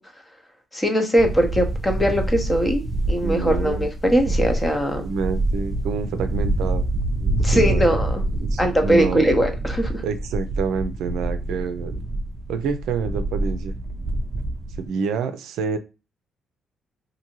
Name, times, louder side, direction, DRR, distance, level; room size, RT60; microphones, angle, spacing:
voice 1, 0.7-5.1 7.4-8.2 8.6-10.0, equal, 15° left, 5 dB, 0.7 m, -21 dB
sound 1, 1.2-14.8, right 1 dB, 25° right, 0.4 m, -26 dB
voice 2, 3.2-3.9 5.0-6.9 7.2-8.0 8.4-9.3 10.0-12.0 12.5-13.8 14.8-15.8, right 5 dB, 85° right, 8 dB, 0.4 m, -28 dB
2.6 x 2.6 x 2.9 m, 0.30 s
cardioid pair, 90°, 0 cm